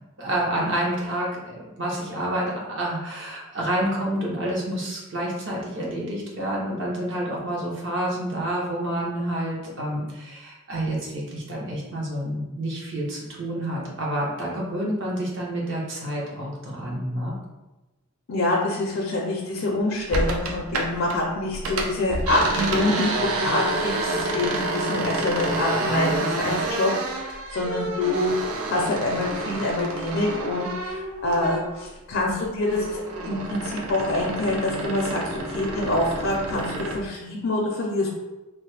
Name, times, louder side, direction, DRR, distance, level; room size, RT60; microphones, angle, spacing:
voice 1, 0.2-17.4, right 1 dB, 55° right, -3 dB, 0.8 m, -28 dB
voice 2, 18.3-28.3 28.7-38.1, left 2 dB, 65° left, -1 dB, 0.4 m, -26 dB
sound 1, 20.1-21.2 21.5-31.9 32.2-37.0, right 2 dB, 80° right, 0.4 m, -29 dB
3.1 x 2.0 x 3.2 m, 1.1 s
head